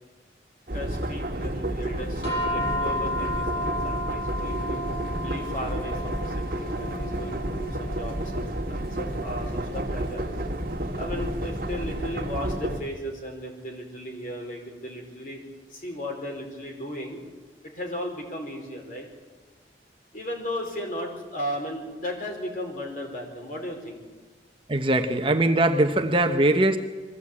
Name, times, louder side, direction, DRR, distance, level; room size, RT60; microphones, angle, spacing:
voice 1, 0.7-4.8 5.2-8.4 8.7-10.3 10.9-15.4 15.7-17.2 17.7-19.1 20.1-24.0, equal, 50° left, 1 dB, 4.4 m, -35 dB
sound 1, 0.7-12.8, right 1 dB, 50° right, 1.7 m, -31 dB
sound 2, 2.2-12.7, left 1 dB, 80° left, 7.1 m, -34 dB
voice 2, 24.7-26.8, right 1 dB, 30° right, 6 dB, 0.9 m, -21 dB
22.0 x 15.5 x 8.5 m, 1.3 s
head